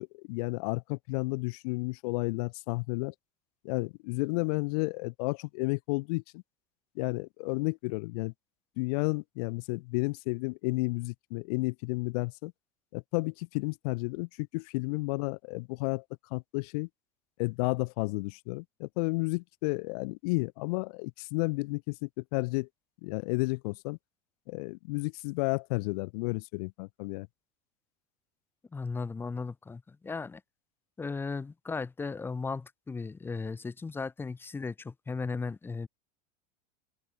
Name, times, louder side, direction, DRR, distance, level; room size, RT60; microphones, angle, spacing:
voice 1, 0.0-3.1 3.6-6.4 6.9-8.3 8.8-12.5 12.9-16.0 16.3-16.9 17.4-22.7 23.0-24.0 24.5-27.3, left 27 dB, 65° left, 1.3 m, -32 dB
voice 2, 28.7-30.4 31.0-35.9, left 4 dB, 10° left, 0.6 m, -36 dB
supercardioid pair, 130°, 21 cm